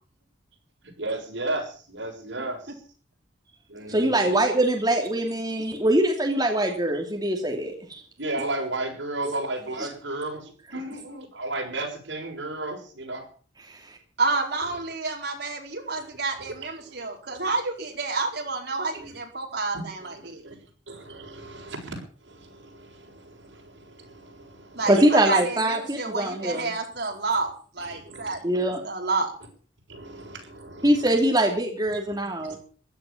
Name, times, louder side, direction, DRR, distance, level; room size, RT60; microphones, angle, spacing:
voice 1, 0.8-2.8 3.7-4.4 8.2-13.3 16.4-17.1 18.9-19.2 19.7-20.1 20.4-20.6 20.9-21.9 22.2-25.1 27.8-28.3 28.6-28.7 29.9-31.1 32.4-32.6, right 2 dB, 75° right, 1 dB, 7.2 m, -34 dB
voice 2, 3.9-8.0 9.2-9.3 24.9-26.7 28.4-28.8 30.8-32.6, right 1 dB, 20° right, 1 dB, 2.9 m, -23 dB
voice 3, 14.2-20.4 24.7-28.4 28.6-29.3, right 3 dB, 60° right, 1 dB, 4.7 m, -29 dB
16.0 x 12.0 x 7.2 m, 0.42 s
head